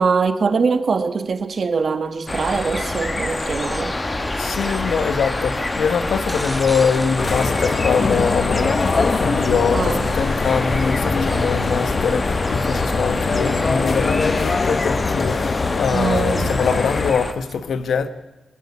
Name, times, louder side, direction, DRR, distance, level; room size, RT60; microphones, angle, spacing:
voice 1, 0.0-4.0 9.7-10.1 15.9-16.6, right 5 dB, 45° right, 1.4 m, -22 dB
sound 1, 2.3-17.3, left 2 dB, 20° left, 1.3 m, -26 dB
voice 2, 4.3-18.1, left 6 dB, 80° left, 1.3 m, -23 dB
sound 2, 6.2-8.4 12.6-12.7, right 1 dB, 5° right, 1.5 m, -37 dB
sound 3, 7.2-17.1, left 4 dB, 35° left, 1.2 m, -22 dB
21.0 x 15.5 x 8.5 m
wide cardioid pair, 165°, 0 cm